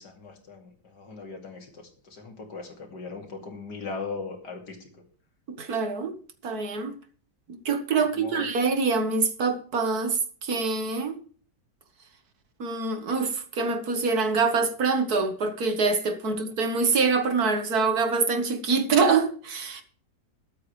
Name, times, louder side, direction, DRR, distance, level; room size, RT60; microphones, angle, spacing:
voice 1, 0.0-5.0 8.1-8.5, left 4 dB, 75° left, 3.0 m, -39 dB
voice 2, 5.6-6.2 6.4-7.0 7.5-11.2 12.6-19.8, right 4 dB, 65° right, 1.9 m, -25 dB
21.5 x 8.4 x 3.2 m
omnidirectional pair, 1.8 m